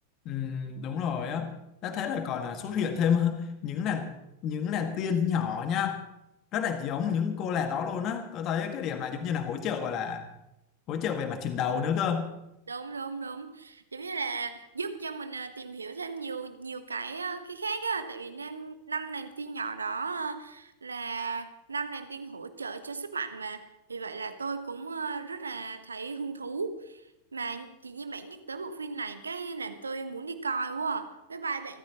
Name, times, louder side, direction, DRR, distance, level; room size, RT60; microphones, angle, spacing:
voice 1, 0.3-1.5 1.8-4.1 4.4-6.0 6.5-10.3 10.9-12.3, left 7 dB, 35° left, 7 dB, 2.0 m, -29 dB
voice 2, 12.7-23.6 23.9-31.8, right 4 dB, 75° right, 10 dB, 1.3 m, -35 dB
29.5 x 14.0 x 3.1 m, 0.86 s
figure-of-eight pair, 90°, 0 cm